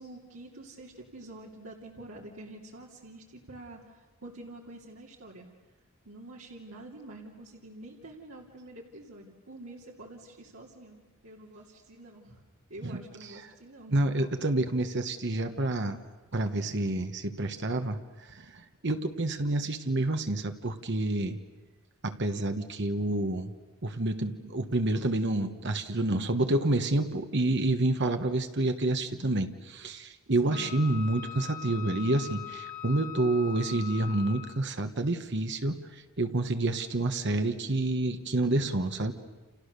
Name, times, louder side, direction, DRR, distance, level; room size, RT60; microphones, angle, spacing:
voice 1, 0.0-5.5 6.0-12.4 12.7-14.0 30.4-30.7, right 1 dB, 75° right, -2 dB, 2.9 m, -47 dB
voice 2, 13.9-16.0 16.3-21.4 22.0-23.5 23.8-39.1, right 2 dB, 55° right, 7 dB, 1.3 m, -28 dB
Wind instrument woodwind instrument, 30.5-34.7, left 9 dB, 35° left, 2.0 m, -42 dB
30.0 x 28.5 x 6.8 m, 1.2 s
head